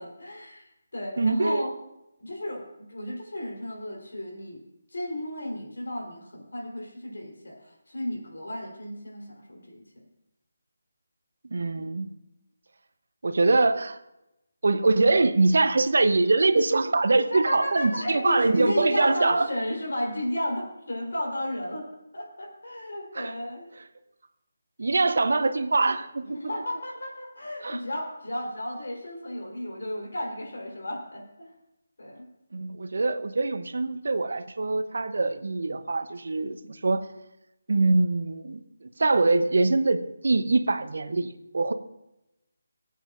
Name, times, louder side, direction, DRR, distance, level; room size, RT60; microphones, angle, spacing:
voice 1, 0.0-1.7 2.2-4.6 4.9-10.0 17.3-21.9 22.1-23.7 26.2-31.5 32.0-32.3, left 1 dB, 70° left, -1 dB, 3.7 m, -33 dB
voice 2, 1.2-1.6 11.5-12.1 13.2-14.0 14.6-19.5 23.1-23.3 24.8-26.5 27.6-27.8 32.5-37.1 37.7-41.7, right 3 dB, 65° right, 11 dB, 0.7 m, -23 dB
21.0 x 8.4 x 2.5 m, 0.89 s
figure-of-eight pair, 155°, 0 cm